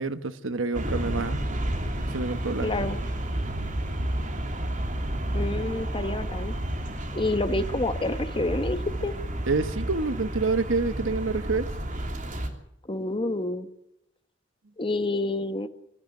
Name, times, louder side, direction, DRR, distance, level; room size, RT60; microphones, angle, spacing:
voice 1, 0.0-1.5 2.1-2.9 9.5-11.7, right 3 dB, 80° right, 1.2 m, -27 dB
sound 1, 0.7-12.5, right 1 dB, 45° right, 3.1 m, -31 dB
voice 2, 2.6-3.0 5.3-6.5 7.1-9.1 12.8-13.7 14.8-15.7, left 2 dB, 25° left, 1.2 m, -28 dB
24.0 x 13.5 x 9.6 m
head